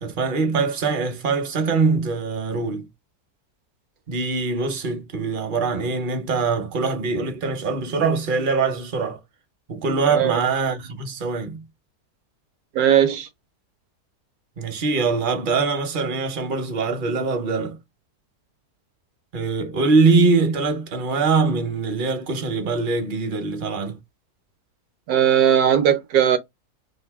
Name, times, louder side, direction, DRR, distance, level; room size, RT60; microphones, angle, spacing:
voice 1, 0.0-2.9 4.1-9.2 9.7-11.6 14.6-17.8 19.3-24.0, right 4 dB, 45° right, 0.6 m, -23 dB
voice 2, 12.7-13.3 25.1-26.4, right 9 dB, 75° right, 1.0 m, -18 dB
2.8 x 2.5 x 3.4 m
omnidirectional pair, 1.7 m